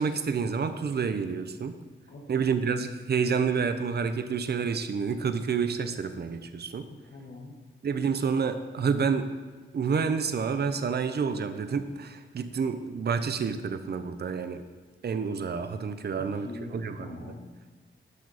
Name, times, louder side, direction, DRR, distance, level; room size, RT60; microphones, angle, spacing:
voice 1, 0.0-1.7 2.3-6.8 7.8-9.3 9.7-14.6 15.0-16.5 16.7-17.1, right 5 dB, 50° right, 10 dB, 0.6 m, -29 dB
voice 2, 2.1-2.6 6.9-7.6 16.1-17.5, left 2 dB, 60° left, -4 dB, 1.2 m, -43 dB
10.5 x 6.2 x 4.1 m, 1.3 s
wide cardioid pair, 100°, 21 cm